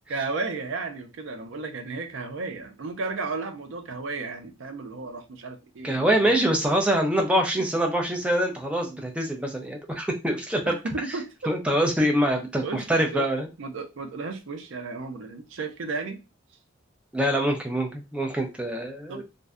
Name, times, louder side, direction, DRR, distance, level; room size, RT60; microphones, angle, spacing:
voice 1, 0.1-6.4 10.6-11.5 12.2-12.4 12.6-13.3 13.6-16.2 19.1-19.2, right 3 dB, 70° right, 7 dB, 0.4 m, -34 dB
voice 2, 5.8-10.8 11.5-13.5 17.1-19.2, right 1 dB, 5° right, 2 dB, 0.4 m, -24 dB
2.6 x 2.1 x 2.3 m, 0.27 s
head